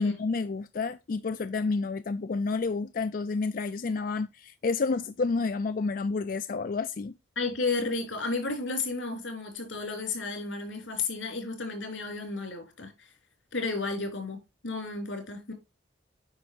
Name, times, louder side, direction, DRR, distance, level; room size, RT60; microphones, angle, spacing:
voice 1, 0.0-7.2, left 4 dB, 45° left, 0.4 m, -30 dB
voice 2, 7.3-13.1 13.5-15.5, left 3 dB, 90° left, 3.4 m, -33 dB
9.3 x 5.7 x 2.8 m
head